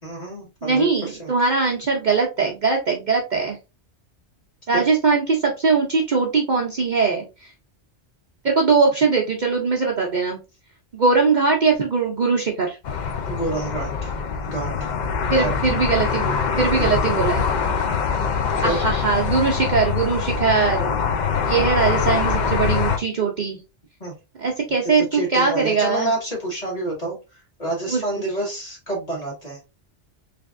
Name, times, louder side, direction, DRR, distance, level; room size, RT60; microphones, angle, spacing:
voice 1, 0.0-1.3 4.7-4.9 13.3-14.1 14.5-14.9 15.3-15.5 18.6-18.8 24.0-24.1 24.8-27.2 27.6-29.6, right 2 dB, 35° left, -3 dB, 1.8 m, -28 dB
voice 2, 0.6-3.6 4.7-7.5 8.4-10.4 10.9-12.8 15.3-17.5 18.6-20.9 21.5-23.6 24.4-26.1 27.9-28.0, right 4 dB, 45° right, -1 dB, 0.7 m, -21 dB
sound 1, 12.8-23.0, left 6 dB, 55° left, 0.5 m, -23 dB
3.4 x 3.3 x 2.4 m, 0.27 s
omnidirectional pair, 1.2 m